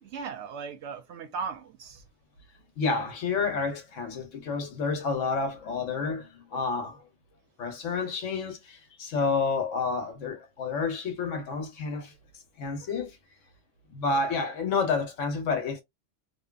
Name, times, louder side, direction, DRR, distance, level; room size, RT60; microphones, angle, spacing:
voice 1, 0.0-2.0, right 5 dB, 70° right, 0.8 m, -37 dB
voice 2, 2.8-7.0 7.6-12.1 12.6-13.1 13.9-15.8, left 4 dB, 70° left, 1.1 m, -29 dB
2.7 x 2.2 x 2.3 m
omnidirectional pair, 1.3 m